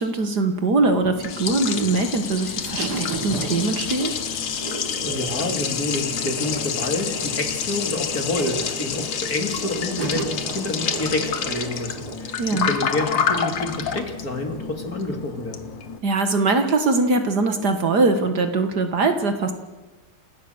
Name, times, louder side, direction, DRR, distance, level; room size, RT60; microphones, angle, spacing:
voice 1, 0.0-4.1 12.4-12.8 16.0-19.5, right 3 dB, 50° right, 8 dB, 2.0 m, -22 dB
Liquid, 0.8-16.0, left 7 dB, 60° left, 2.0 m, -28 dB
sound 1, 2.8-12.2, right 4 dB, 85° right, 3.0 m, -35 dB
voice 2, 5.0-12.4 12.7-15.6, left 2 dB, 45° left, 5 dB, 3.0 m, -28 dB
28.5 x 15.5 x 7.9 m, 1.2 s
omnidirectional pair, 2.3 m